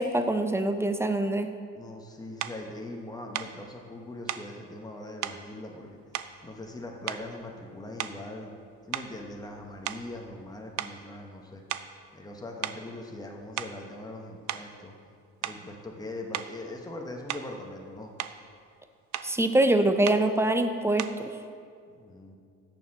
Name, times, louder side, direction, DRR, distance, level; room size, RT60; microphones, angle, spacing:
voice 1, 0.0-1.5 19.2-21.3, right 1 dB, 10° right, 8 dB, 0.6 m, -24 dB
voice 2, 1.7-6.0 6.4-8.5 8.9-11.6 12.1-14.9 15.4-18.1 21.9-22.4, left 2 dB, 15° left, 1 dB, 1.2 m, -41 dB
sound 1, 2.4-2.6 3.3-3.6 4.3-4.5 5.2-5.4 6.1-6.7 7.1-7.4 7.9-8.3 8.9-10.5 10.8-11.0 11.7-12.0 12.6-12.8 13.4-13.8 14.5-14.7 15.4-15.7 16.3-16.6 17.3-17.6 18.0-18.4 19.1-19.3 20.0-20.3 21.0-21.3, right 12 dB, 70° right, 0.5 m, -36 dB
7.0 x 6.7 x 6.1 m, 2.2 s
cardioid pair, 90°, 30 cm